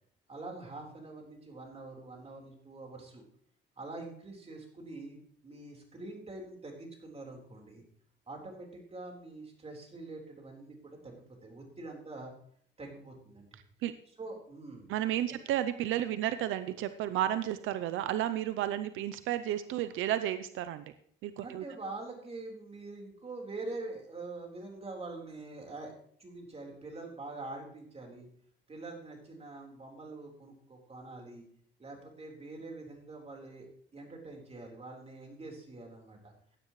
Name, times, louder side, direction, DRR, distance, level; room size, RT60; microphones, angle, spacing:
voice 1, 0.3-3.2 3.8-5.2 5.4-7.8 8.3-12.3 12.8-13.5 14.2-14.9 21.4-25.9 26.2-28.3 28.7-31.5 31.8-33.7 33.9-36.3, right 2 dB, 30° right, 1 dB, 4.1 m, -45 dB
voice 2, 14.9-20.8 21.2-21.6, right 12 dB, 90° right, 12 dB, 0.6 m, -32 dB
15.5 x 10.0 x 3.2 m, 0.62 s
cardioid pair, 90°, 20 cm